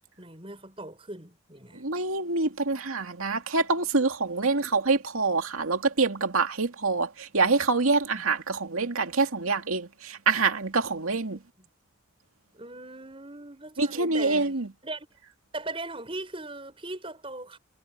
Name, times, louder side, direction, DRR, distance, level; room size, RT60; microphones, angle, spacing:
voice 1, 0.2-1.9 4.5-4.9 8.1-8.3 11.2-11.7 12.5-15.1 15.5-17.6, right 2 dB, 25° right, 7.2 m, -40 dB
voice 2, 1.8-11.4 13.8-14.7, right 3 dB, 85° right, 2.5 m, -26 dB
head